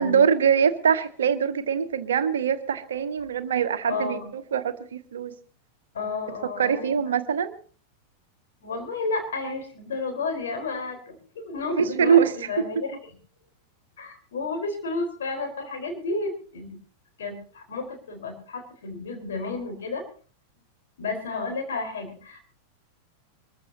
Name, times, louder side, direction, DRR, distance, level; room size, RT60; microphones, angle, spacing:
voice 1, 0.0-4.2 4.5-5.3 6.6-7.6 11.8-12.3, right 7 dB, 65° right, 10 dB, 1.1 m, -23 dB
voice 2, 3.8-4.3 5.9-6.9 8.6-13.0 14.0-16.8 17.2-20.0 21.0-22.4, left 3 dB, 60° left, 3 dB, 4.4 m, -32 dB
23.5 x 15.0 x 2.8 m, 0.40 s
figure-of-eight pair, 90°, 0 cm